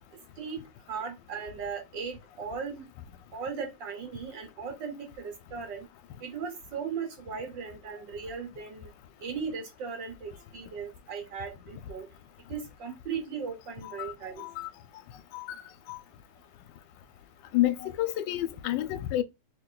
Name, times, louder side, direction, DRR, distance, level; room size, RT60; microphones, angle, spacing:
voice 1, 0.9-2.9 3.3-5.9 6.2-8.9 9.2-12.1 12.5-14.5, right 6 dB, 65° right, 1.9 m, -37 dB
voice 2, 13.8-14.1 14.4-14.7 15.3-15.6 15.9-16.0 17.5-19.2, left 14 dB, 75° left, 1.2 m, -29 dB
3.2 x 3.0 x 3.8 m
omnidirectional pair, 2.1 m